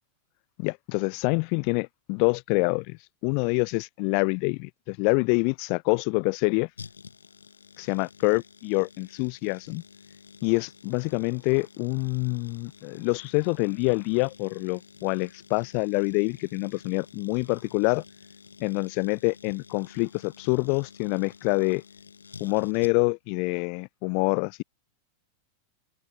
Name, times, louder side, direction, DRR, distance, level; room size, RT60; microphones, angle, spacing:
voice 1, 0.6-3.0 3.2-6.7 7.8-9.8 10.4-18.0 18.6-21.8 22.4-24.6, left 40 dB or more, 45° left, 0.5 m, -26 dB
sound 1, 6.8-23.3 23.5-23.6, left 6 dB, 75° left, 7.7 m, -50 dB
figure-of-eight pair, 90°, 0 cm